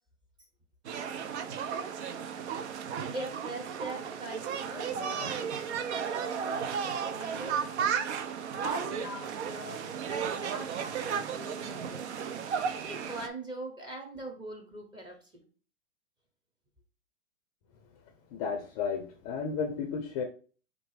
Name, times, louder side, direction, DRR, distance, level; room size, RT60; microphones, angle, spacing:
sound 1, 0.8-13.3, right 7 dB, 55° right, 0.6 m, -34 dB
voice 1, 2.7-8.2 8.6-15.4, right 1 dB, 10° right, 1 dB, 0.8 m, -43 dB
voice 2, 18.3-20.2, left 6 dB, 30° left, 4 dB, 0.5 m, -33 dB
4.5 x 2.6 x 4.6 m, 0.38 s
hypercardioid pair, 130°, 40 cm